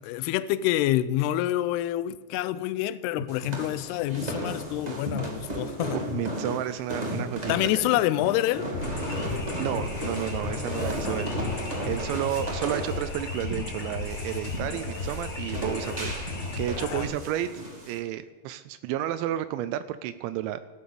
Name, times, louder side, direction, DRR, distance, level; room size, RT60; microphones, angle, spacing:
voice 1, 0.0-6.0 7.5-8.7 10.7-11.2 16.8-17.1, left 14 dB, 85° left, 2.3 m, -27 dB
sound 1, 3.3-18.0, equal, 25° right, 0.9 m, -35 dB
voice 2, 6.1-7.8 9.6-11.3 11.9-17.5 17.9-20.6, right 12 dB, 85° right, 2.9 m, -32 dB
sound 2, 8.7-17.0, left 3 dB, 30° left, 2.9 m, -35 dB
14.5 x 9.9 x 6.9 m
omnidirectional pair, 5.2 m